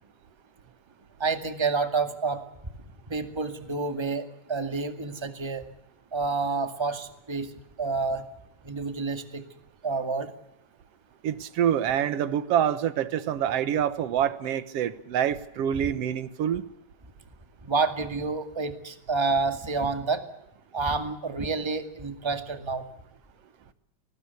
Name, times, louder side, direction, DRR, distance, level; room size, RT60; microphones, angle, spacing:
voice 1, 1.2-2.4 3.1-5.7 6.1-7.5 7.8-8.2 8.6-9.4 9.8-10.3 17.6-20.2 20.7-22.8, right 4 dB, 10° right, 8 dB, 1.5 m, -29 dB
voice 2, 11.2-16.6, right 9 dB, 60° right, 14 dB, 1.8 m, -26 dB
30.0 x 19.5 x 8.3 m, 0.78 s
omnidirectional pair, 3.7 m